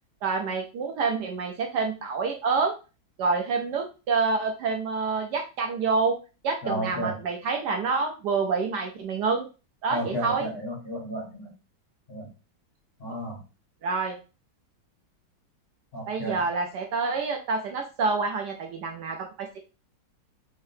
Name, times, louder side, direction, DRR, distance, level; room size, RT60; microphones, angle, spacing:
voice 1, 0.2-2.7 3.2-6.2 6.4-9.5 9.8-10.5 13.8-14.2 16.1-19.6, right 4 dB, 70° right, 2 dB, 1.1 m, -27 dB
voice 2, 6.6-7.2 9.9-11.5 12.1-12.3 13.0-13.4 15.9-16.4, right 1 dB, 35° left, -4 dB, 1.5 m, -32 dB
3.7 x 3.7 x 2.7 m, 0.31 s
omnidirectional pair, 2.1 m